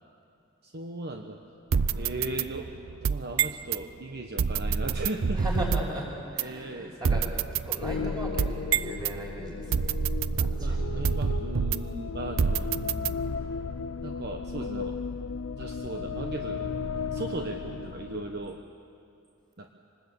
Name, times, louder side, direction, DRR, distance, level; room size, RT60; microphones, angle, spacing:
voice 1, 0.6-1.4 1.9-2.7 3.0-5.4 6.4-7.3 10.6-13.2 13.8-15.0 15.6-16.8 17.1-18.6 19.6-19.7, right 2 dB, 50° right, 3 dB, 1.2 m, -37 dB
sound 1, 1.7-3.8 4.4-6.0 6.4-6.5 7.0-9.1 9.7-12.0 12.4-13.5, right 6 dB, 75° right, 0.6 m, -28 dB
voice 2, 5.3-7.3 7.5-10.0 10.3-10.9 12.2-12.3, equal, 20° right, -2 dB, 6.3 m, -37 dB
sound 2, 7.8-18.6, left 5 dB, 80° left, 0.6 m, -35 dB
25.5 x 20.0 x 8.6 m, 2.6 s
head